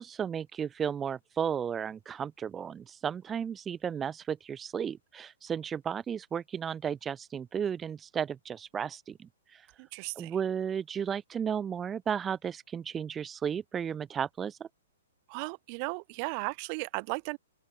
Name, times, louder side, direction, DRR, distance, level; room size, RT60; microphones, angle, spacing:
voice 1, 0.0-9.9 10.2-14.7, right 8 dB, 15° right, 1.8 m, -34 dB
voice 2, 9.8-10.4 15.3-17.4, right 36 dB, 40° right, 5.3 m, -36 dB
open air
hypercardioid pair, 130°, 0 cm